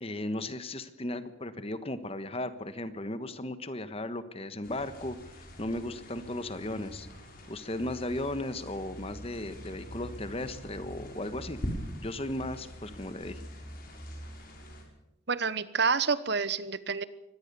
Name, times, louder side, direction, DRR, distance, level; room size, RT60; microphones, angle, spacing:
voice 1, 0.0-7.1 7.5-11.6 12.0-13.4, left 1 dB, 30° left, 11 dB, 1.3 m, -36 dB
sound 1, 4.6-14.8, equal, 45° left, 5.7 m, -43 dB
voice 2, 15.3-17.0, right 5 dB, 55° right, 15 dB, 1.1 m, -28 dB
24.0 x 18.5 x 6.9 m, 0.86 s
head